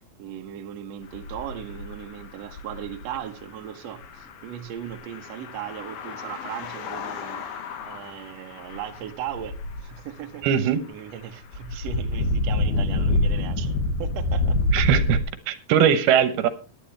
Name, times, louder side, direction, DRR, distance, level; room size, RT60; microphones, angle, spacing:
voice 1, 0.2-7.5 7.8-14.6, right 10 dB, 65° right, 6 dB, 1.7 m, -37 dB
sound 1, 1.0-3.2 4.0-10.0 11.5-15.2, left 2 dB, 80° left, 3.3 m, -27 dB
voice 2, 10.4-10.8 14.7-16.5, right 9 dB, 85° right, 12 dB, 3.0 m, -21 dB
17.5 x 11.0 x 3.3 m, 0.33 s
omnidirectional pair, 4.4 m